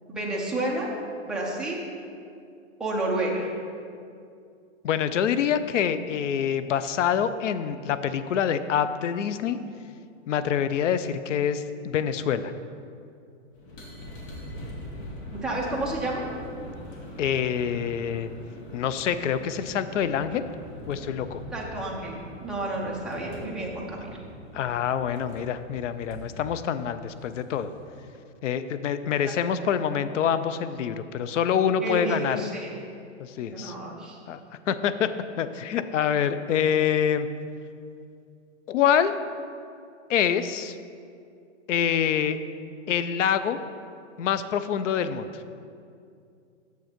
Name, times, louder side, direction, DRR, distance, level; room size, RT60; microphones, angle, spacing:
voice 1, 0.1-0.9 1.2-1.8 2.8-3.5 15.3-16.2 21.5-22.2 22.4-24.2 29.2-29.4 31.8-32.7 33.5-34.2, right 2 dB, ahead, -4 dB, 0.5 m, -30 dB
voice 2, 4.8-9.6 10.3-12.5 17.2-18.3 18.7-20.4 20.9-21.4 24.5-27.7 28.4-32.4 33.2-33.7 34.3-34.4 34.7-35.1 35.4-37.3 38.7-39.1 40.1-40.7 41.7-42.4 42.9-43.6 44.2-45.3, left 8 dB, 80° left, 12 dB, 0.6 m, -26 dB
sound 1, 13.5-27.9, left 1 dB, 45° left, 1.6 m, -43 dB
6.9 x 6.4 x 5.1 m, 2.4 s
hypercardioid pair, 150°, 36 cm